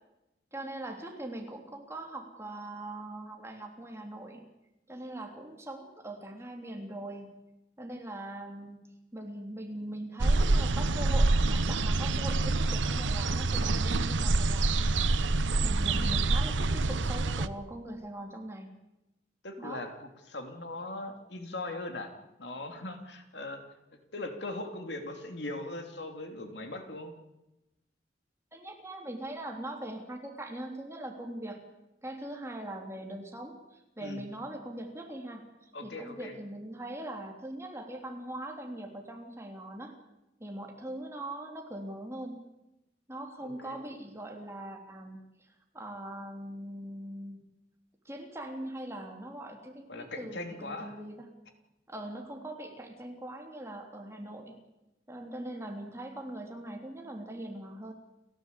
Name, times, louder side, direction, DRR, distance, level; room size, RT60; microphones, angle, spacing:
voice 1, 0.5-4.4 4.9-7.3 7.8-8.8 9.1-15.0 15.6-18.7 19.6-19.8 28.5-31.6 32.0-40.0 40.4-42.3 43.1-47.4 48.0-51.3 51.9-54.6 55.1-57.9, right 1 dB, 15° right, 2 dB, 3.2 m, -41 dB
sound 1, 10.2-17.5, right 2 dB, 85° right, 0.9 m, -26 dB
voice 2, 15.9-16.4 19.4-22.1 22.4-23.6 23.9-27.1 34.0-34.2 35.7-36.3 43.4-43.8 49.9-50.9, left 2 dB, 65° left, 5 dB, 3.0 m, -40 dB
29.5 x 15.0 x 8.3 m, 0.96 s
head